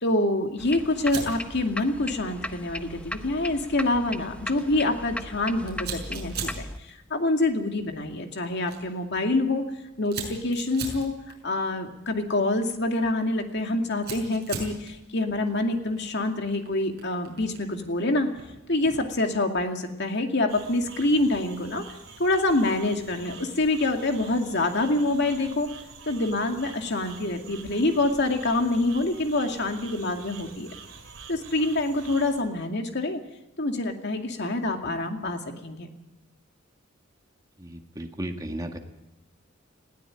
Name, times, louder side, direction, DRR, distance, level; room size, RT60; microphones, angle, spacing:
voice 1, 0.0-9.6 10.0-18.3 18.7-21.8 22.2-25.7 26.1-30.7 31.3-33.2 33.6-35.9, left 2 dB, 55° left, 4 dB, 2.3 m, -26 dB
sound 1, 0.6-6.8, left 1 dB, 5° left, 0.7 m, -37 dB
Fire, 1.0-19.2, right 5 dB, 50° right, 5.9 m, -43 dB
sound 2, 20.5-32.4, right 5 dB, 70° right, 3.2 m, -46 dB
voice 2, 37.6-38.8, right 1 dB, 15° right, 3 dB, 1.7 m, -34 dB
20.5 x 15.5 x 9.0 m, 0.93 s
head